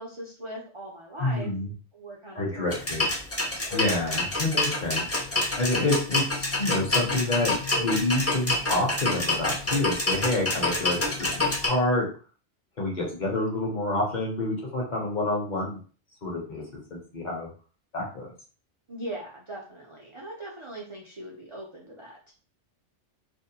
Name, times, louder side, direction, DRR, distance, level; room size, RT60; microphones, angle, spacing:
voice 1, 0.0-1.5 1.9-2.6 3.6-3.8 18.9-22.3, right 1 dB, 50° right, -3 dB, 0.3 m, -40 dB
voice 2, 1.2-1.7 2.3-3.1 3.7-12.1 12.8-15.8 16.2-16.6 16.9-17.5 17.9-18.3, left 2 dB, 45° left, -1 dB, 0.7 m, -28 dB
sound 1, 2.7-11.7, left 2 dB, 20° left, 0.4 m, -27 dB
2.6 x 2.1 x 2.7 m, 0.39 s
omnidirectional pair, 1.2 m